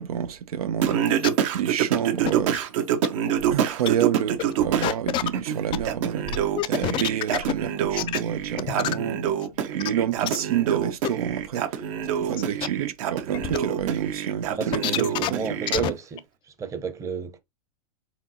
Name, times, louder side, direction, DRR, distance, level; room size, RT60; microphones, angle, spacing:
voice 1, 0.0-2.6 3.3-9.4 9.7-11.9 12.2-15.9, right 9 dB, 90° right, 0.5 m, -29 dB
Singing, 0.8-4.9 5.3-15.7, right 9 dB, 60° right, 0.8 m, -26 dB
sound 1, 1.2-1.3 2.3-2.7 3.0-3.1 3.5-3.6 3.9-4.0 4.4-4.5 4.8-5.9 6.3-7.5 8.0-8.2 8.6-8.9 9.4-9.5 9.8-9.9 10.2-10.4 11.0-11.1 11.8-11.9 12.4-12.7 13.3-13.6 14.7-15.3 15.7-15.9 16.2-16.3, left 13 dB, 30° left, 0.3 m, -27 dB
Drum, 8.7-10.8, left 12 dB, 65° left, 0.8 m, -42 dB
voice 2, 11.9-12.5 14.5-16.2 16.4-17.4, right 6 dB, 15° right, 0.7 m, -33 dB
4.4 x 3.7 x 2.7 m
hypercardioid pair, 125°, 18 cm